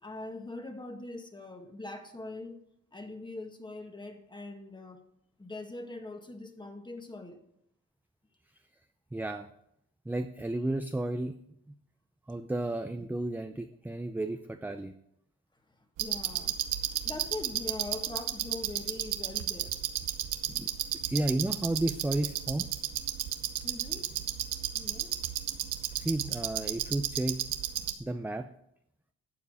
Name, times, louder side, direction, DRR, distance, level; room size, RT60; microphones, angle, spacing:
voice 1, 0.0-2.6 2.9-5.0 5.4-7.4 16.0-16.6 17.0-19.7 23.6-24.1 24.7-25.1, left 2 dB, 15° left, 5 dB, 1.7 m, -42 dB
voice 2, 9.1-9.5 10.1-11.3 12.3-14.9 20.5-20.7 21.1-22.7 25.9-27.4 28.0-28.5, right 1 dB, 5° right, 8 dB, 0.6 m, -32 dB
sound 1, 16.0-27.9, right 11 dB, 90° right, 1.0 m, -33 dB
12.0 x 7.3 x 4.9 m, 0.75 s
cardioid pair, 90°, 30 cm